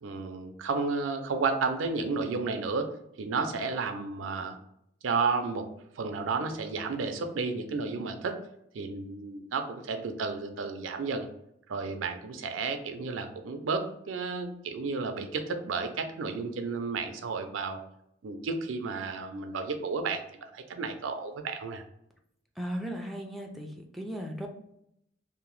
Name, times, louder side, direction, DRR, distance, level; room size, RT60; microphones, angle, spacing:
voice 1, 0.0-2.9 3.2-4.6 5.0-5.7 6.0-8.4 8.7-11.3 11.7-17.8 18.2-21.8, right 4 dB, 85° right, 6 dB, 0.4 m, -32 dB
voice 2, 22.6-24.5, equal, ahead, 1 dB, 0.3 m, -36 dB
2.8 x 2.0 x 3.0 m, 0.75 s
head